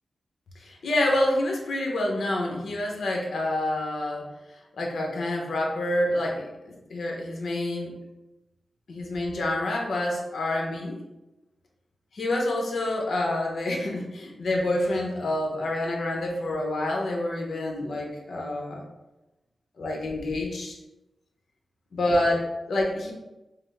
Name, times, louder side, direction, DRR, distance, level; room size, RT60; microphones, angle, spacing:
voice 1, 0.6-4.3 4.7-7.9 8.9-11.0 12.1-18.8 19.8-20.8 21.9-23.1, left 1 dB, 70° left, 0 dB, 0.8 m, -27 dB
5.6 x 2.0 x 3.3 m, 0.99 s
wide cardioid pair, 140°, 0 cm